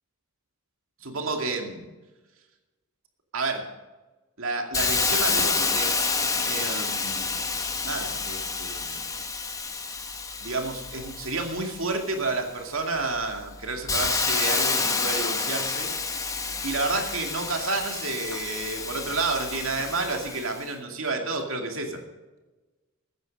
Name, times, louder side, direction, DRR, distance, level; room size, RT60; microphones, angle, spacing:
voice 1, 1.0-1.9 3.3-3.7 4.4-6.0 6.4-7.4 7.8-8.9 10.4-15.9 16.6-22.0, right 3 dB, 70° right, 3 dB, 2.5 m, -30 dB
Hiss, 4.7-12.3 12.8-20.6, left 4 dB, 15° left, 1.0 m, -29 dB
15.0 x 9.5 x 5.4 m, 1.2 s
head